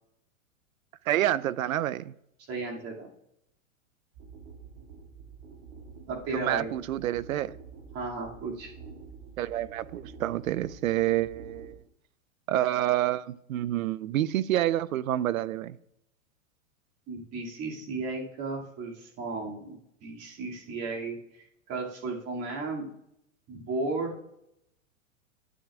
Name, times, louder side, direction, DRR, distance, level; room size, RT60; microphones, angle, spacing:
voice 1, 1.1-2.1 6.3-7.6 9.4-11.8 12.5-15.8, right 13 dB, 85° right, 0.5 m, -28 dB
voice 2, 2.5-3.1 6.1-6.7 7.9-8.7 17.1-22.9 23.5-24.2, right 3 dB, 35° right, 2.4 m, -34 dB
sound 1, 4.1-11.8, right 5 dB, 65° right, 2.2 m, -48 dB
12.5 x 8.7 x 2.4 m
hypercardioid pair, 110°, 40 cm